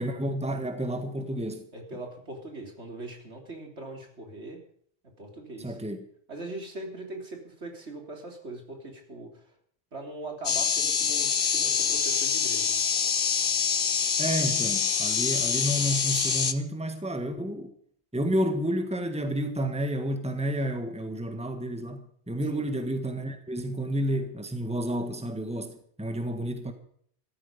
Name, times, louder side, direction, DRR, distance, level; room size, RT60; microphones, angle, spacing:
voice 1, 0.0-1.6 5.6-6.1 14.2-17.7 18.1-26.7, equal, 5° right, 1.6 m, -30 dB
voice 2, 1.7-4.6 5.2-5.8 6.3-9.4 9.9-12.7 22.5-22.7, right 2 dB, 80° right, 3.7 m, -41 dB
sound 1, 10.4-16.5, left 6 dB, 55° left, 1.2 m, -26 dB
14.5 x 13.5 x 5.2 m
omnidirectional pair, 1.1 m